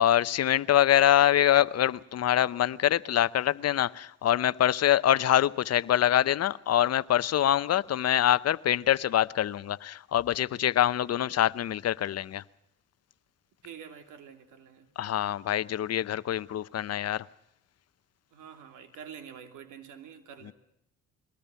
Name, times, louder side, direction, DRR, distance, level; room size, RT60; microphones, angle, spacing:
voice 1, 0.0-12.4 15.0-17.3 20.4-20.5, left 11 dB, 55° left, 0.8 m, -25 dB
voice 2, 13.6-14.9 18.3-20.5, right 8 dB, 90° right, 2.9 m, -47 dB
23.0 x 19.5 x 7.0 m
cardioid pair, 90°, 30 cm